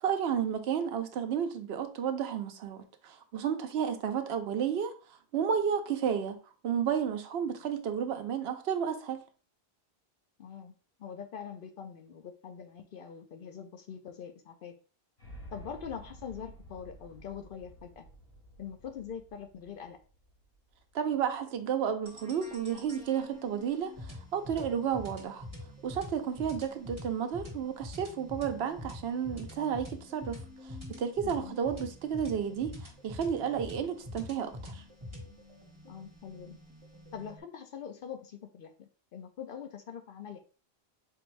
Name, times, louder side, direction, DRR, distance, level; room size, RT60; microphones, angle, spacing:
voice 1, 0.0-4.9 5.3-6.4 6.6-9.2 20.9-23.9 24.3-25.4 25.8-30.4 30.9-34.7, right 8 dB, 75° right, 0.8 m, -32 dB
voice 2, 10.4-10.7 11.0-14.7 15.5-18.0 18.6-20.0 31.2-31.6 35.8-36.6 37.1-40.4, left 7 dB, 60° left, 0.7 m, -43 dB
sound 1, 15.2-21.3, equal, 80° left, 2.8 m, -52 dB
sound 2, 22.1-37.4, left 1 dB, 25° right, 1.5 m, -46 dB
4.5 x 2.6 x 3.1 m
omnidirectional pair, 1.1 m